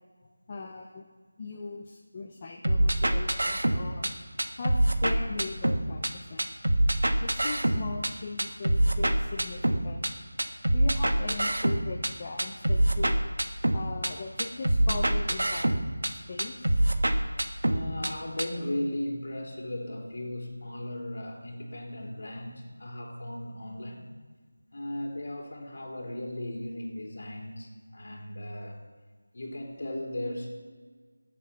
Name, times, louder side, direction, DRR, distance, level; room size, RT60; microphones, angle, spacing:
voice 1, 0.5-1.1 1.4-4.1 4.6-4.7 5.0-6.5 7.2-10.0 10.7-13.2 13.7-15.7 16.1-16.8, left 3 dB, 20° left, 0 dB, 0.6 m, -39 dB
sound 1, 2.6-4.1 4.4-6.1 6.4-8.1 8.4-10.1 10.4-12.1 12.4-14.1 14.4-16.1 16.4-18.1 18.4-18.5, right 1 dB, 80° right, 1.3 m, -25 dB
voice 2, 17.6-24.1 24.7-28.8 29.3-30.5, left 1 dB, 45° left, -1 dB, 3.4 m, -36 dB
14.0 x 7.5 x 5.6 m, 1.5 s
figure-of-eight pair, 175°, 0 cm